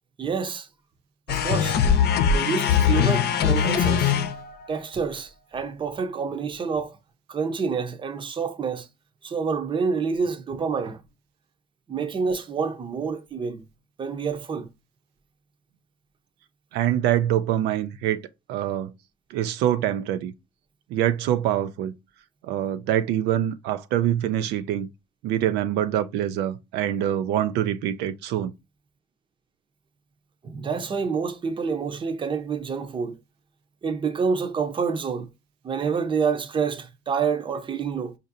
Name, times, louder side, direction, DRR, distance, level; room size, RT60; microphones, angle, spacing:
voice 1, 0.2-0.7 1.3-1.8 2.3-4.2 4.7-7.0 7.3-8.9 9.2-11.0 11.9-13.6 14.0-14.7 30.4-33.2 33.8-35.3 35.6-38.1, right 5 dB, 30° right, 0.7 m, -28 dB
sound 1, 1.3-4.7, left 7 dB, 70° left, 0.7 m, -21 dB
voice 2, 16.7-18.2 18.5-18.9 19.3-20.3 20.9-21.9 22.4-24.9 25.2-28.5, right 11 dB, 90° right, 0.4 m, -25 dB
5.0 x 2.6 x 2.6 m
cardioid pair, 110°, 17 cm